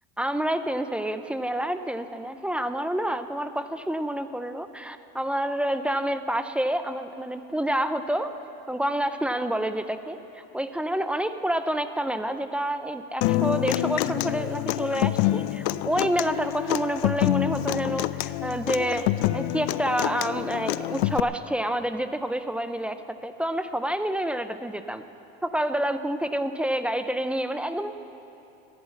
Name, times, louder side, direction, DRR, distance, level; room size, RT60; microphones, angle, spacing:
voice 1, 0.2-8.3 8.7-25.0 25.4-28.0, right 1 dB, 5° right, 10 dB, 0.3 m, -28 dB
Human voice / Acoustic guitar, 13.2-21.2, left 15 dB, 80° left, 0.5 m, -27 dB
15.0 x 11.0 x 8.1 m, 2.9 s
cardioid pair, 140°, 33 cm